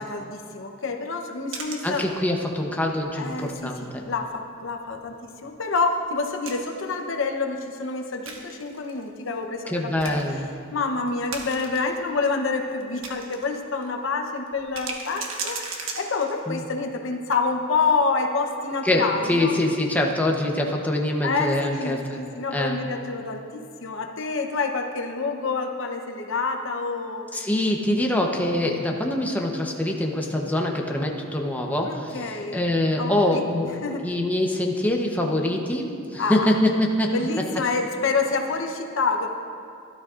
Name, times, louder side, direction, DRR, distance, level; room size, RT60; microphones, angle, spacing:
voice 1, 0.0-2.0 3.2-5.2 5.4-10.2 10.7-19.6 21.2-27.3 31.8-32.6 33.0-33.4 33.8-34.1 36.2-36.6 37.1-39.3, left 4 dB, 70° left, 3 dB, 0.8 m, -27 dB
sound 1, 1.5-2.5 3.0-3.1 3.5-3.7 4.0-4.1 5.7-7.0 8.3-9.0 9.6-9.7 10.0-10.4 11.1-11.9 12.4-13.5 13.8-13.9 14.5-16.5, right 4 dB, 85° right, 1.3 m, -36 dB
voice 2, 1.8-4.0 9.7-10.5 16.5-16.6 18.8-22.2 22.5-22.8 27.3-33.7 34.0-37.1, left 1 dB, 10° left, 0 dB, 0.8 m, -24 dB
17.0 x 12.0 x 2.5 m, 2.4 s
head